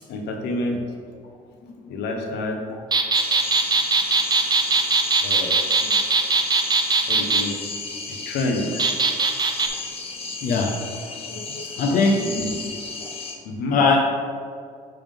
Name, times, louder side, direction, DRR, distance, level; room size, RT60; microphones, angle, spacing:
voice 1, 0.1-0.8 1.9-2.6 5.2-5.6 7.1-7.6 8.1-8.8 11.5-11.6 12.2-12.6 13.4-13.8, left 2 dB, 80° left, 2 dB, 1.0 m, -28 dB
sound 1, 2.9-7.4 8.8-9.7, right 4 dB, 25° right, 0.6 m, -20 dB
sound 2, 3.1-13.4, left 4 dB, 35° left, 0.9 m, -34 dB
voice 2, 10.4-10.8 11.2-12.3 13.7-14.0, left 4 dB, 55° left, 1 dB, 0.7 m, -21 dB
9.0 x 3.6 x 3.6 m, 2.3 s
cardioid pair, 110°, 17 cm